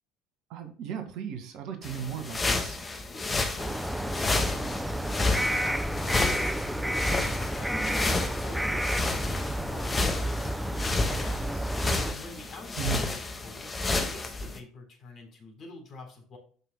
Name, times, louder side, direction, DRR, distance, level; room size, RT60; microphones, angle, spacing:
voice 1, 0.5-2.8 12.8-13.1, right 8 dB, 60° right, 5 dB, 1.9 m, -35 dB
sound 1, 1.8-14.6, left 3 dB, 25° left, 1.9 m, -31 dB
voice 2, 3.1-7.8 8.1-16.4, left 2 dB, 45° left, 3 dB, 4.0 m, -47 dB
sound 2, 3.6-12.1, equal, ahead, 0.9 m, -30 dB
12.0 x 5.9 x 2.2 m, 0.43 s
hypercardioid pair, 65°, 0 cm